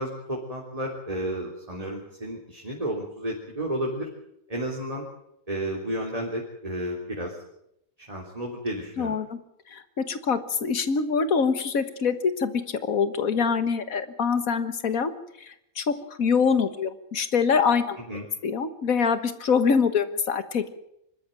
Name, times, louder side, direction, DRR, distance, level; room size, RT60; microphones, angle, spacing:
voice 1, 0.0-4.1 4.5-5.0 5.5-7.4 8.1-9.2 18.1-18.2, right 1 dB, 25° right, -1 dB, 3.4 m, -32 dB
voice 2, 9.0-9.4 9.7-12.6 12.9-15.1 15.4-18.0 18.4-20.7, left 5 dB, 75° left, 11 dB, 1.9 m, -24 dB
24.5 x 13.0 x 9.0 m, 0.79 s
omnidirectional pair, 1.5 m